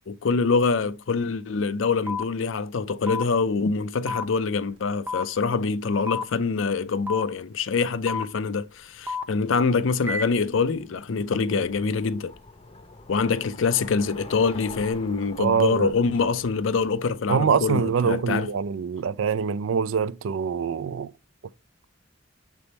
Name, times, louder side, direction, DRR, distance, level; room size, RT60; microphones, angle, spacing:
voice 1, 0.1-12.3 13.1-18.5, left 4 dB, 75° left, 0.5 m, -25 dB
sound 1, 2.1-2.2 3.1-3.2 4.1-4.2 5.1-5.2 6.1-6.2 7.1-7.2 8.1-8.2 9.1-9.2 10.1-10.2, left 4 dB, 10° right, 0.6 m, -29 dB
Bicycle, 8.3-18.8, left 2 dB, 30° left, 0.6 m, -47 dB
voice 2, 15.4-15.9 17.3-21.1, right 6 dB, 80° right, 0.4 m, -24 dB
6.9 x 3.5 x 4.1 m
head